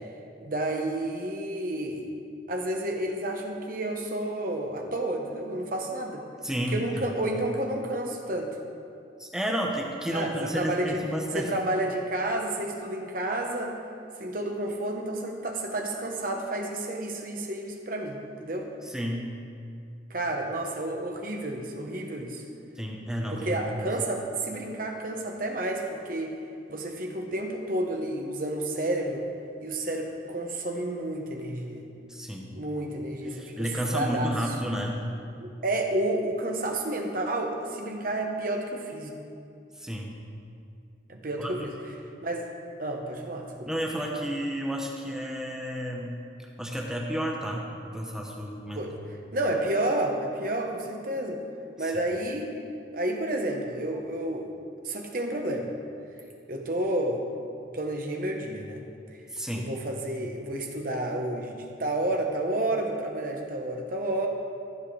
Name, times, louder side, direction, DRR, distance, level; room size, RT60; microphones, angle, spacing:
voice 1, 0.4-2.1 2.5-6.2 6.7-8.6 10.1-11.0 11.3-13.7 14.2-18.7 20.1-22.4 23.3-26.3 26.7-29.2 29.6-31.8 32.5-34.3 35.4-39.1 41.1-41.7 42.2-42.5 42.8-43.7 48.7-48.9 49.3-51.4 51.8-52.5 52.9-54.5 54.8-55.7 56.5-57.3 57.7-58.8 59.6-64.3, right 1 dB, 45° right, 2 dB, 1.1 m, -30 dB
voice 2, 6.4-7.1 9.2-11.5 18.8-19.3 22.8-23.9 32.1-32.6 33.3-35.0 39.8-40.1 41.4-41.5 43.7-46.1 46.6-48.8 51.8-51.9 59.3-59.7, equal, 5° right, -1 dB, 0.9 m, -31 dB
15.0 x 7.6 x 3.4 m, 2.5 s
head